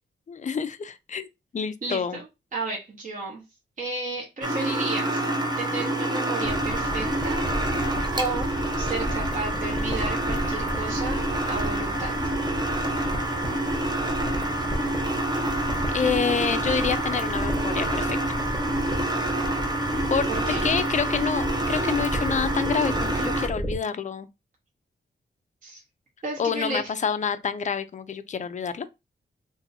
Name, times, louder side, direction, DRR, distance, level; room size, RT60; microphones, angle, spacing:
voice 1, 0.3-1.3 1.5-2.2 15.3-15.4 15.9-18.2 20.1-20.3 20.6-24.3 26.4-28.9, left 6 dB, 40° left, 0.4 m, -27 dB
voice 2, 1.8-2.3 2.5-3.4 3.8-5.2 5.6-8.5 8.8-12.1 20.3-20.6 25.6-25.8 26.2-26.9, right 3 dB, 40° right, 0.9 m, -33 dB
sound 1, 4.4-23.5, right 1 dB, 20° right, 0.6 m, -27 dB
sound 2, 6.4-23.8, equal, ahead, 1.0 m, -33 dB
2.7 x 2.6 x 4.0 m
wide cardioid pair, 170°, 20 cm